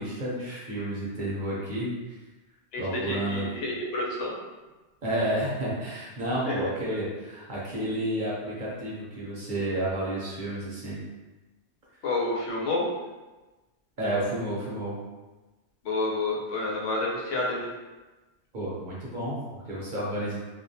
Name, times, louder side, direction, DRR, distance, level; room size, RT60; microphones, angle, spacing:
voice 1, 0.0-1.9 2.8-3.5 5.0-11.0 14.0-15.0 18.5-20.4, right 1 dB, 50° right, -7 dB, 0.7 m, -31 dB
voice 2, 2.7-4.3 6.5-6.6 12.0-12.8 15.8-17.7, left 2 dB, 90° left, -3 dB, 1.0 m, -29 dB
2.3 x 2.2 x 2.6 m, 1.2 s
omnidirectional pair, 1.2 m